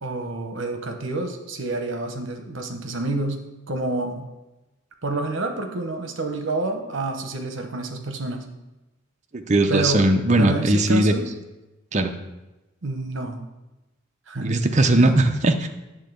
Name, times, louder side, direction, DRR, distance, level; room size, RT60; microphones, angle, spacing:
voice 1, 0.0-3.4 3.7-4.3 5.0-8.5 9.7-10.1 10.4-11.3 12.8-13.5 14.3-14.6 15.0-15.1, right 2 dB, 65° right, 5 dB, 0.9 m, -28 dB
voice 2, 9.3-11.1 11.9-12.1 14.4-15.7, right 2 dB, 35° right, 6 dB, 0.5 m, -19 dB
8.2 x 3.7 x 6.7 m, 1.0 s
head